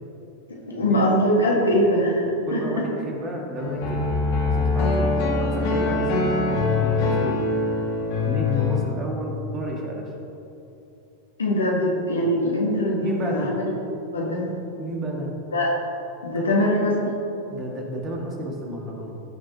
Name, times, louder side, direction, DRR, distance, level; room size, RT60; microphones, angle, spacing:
voice 1, 0.7-2.6 11.4-13.7 14.1-14.5 15.5-15.7 16.2-17.0 17.5-17.6, equal, 75° left, -2 dB, 1.8 m, -22 dB
voice 2, 2.5-4.1 4.4-7.5 8.2-10.1 13.0-13.5 14.8-15.3 16.4-16.7 17.5-19.2, equal, 30° right, 0 dB, 1.8 m, -32 dB
sound 1, 3.6-8.8, left 3 dB, 45° left, 1.9 m, -23 dB
16.5 x 6.4 x 2.9 m, 2.9 s
figure-of-eight pair, 90°, 0 cm